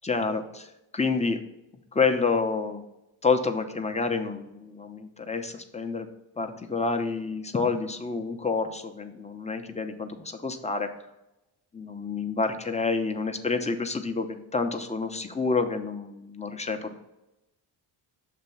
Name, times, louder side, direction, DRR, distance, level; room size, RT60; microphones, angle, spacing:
voice 1, 0.0-1.4 1.9-2.8 3.2-6.1 6.4-10.9 11.7-14.3 14.5-17.0, left 4 dB, 15° left, 6 dB, 0.7 m, -28 dB
6.7 x 2.9 x 5.7 m, 0.93 s
supercardioid pair, 55°, 50 cm